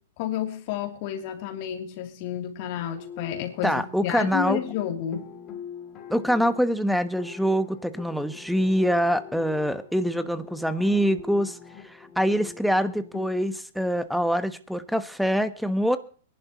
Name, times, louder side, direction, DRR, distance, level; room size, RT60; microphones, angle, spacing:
voice 1, 0.2-5.3, left 10 dB, 50° left, 3.0 m, -31 dB
sound 1, 2.9-13.3, left 7 dB, 35° left, 2.8 m, -44 dB
voice 2, 3.6-4.6 6.1-11.6 11.8-16.0, equal, ahead, 1.1 m, -24 dB
23.0 x 11.5 x 3.1 m
hypercardioid pair, 120°, 0 cm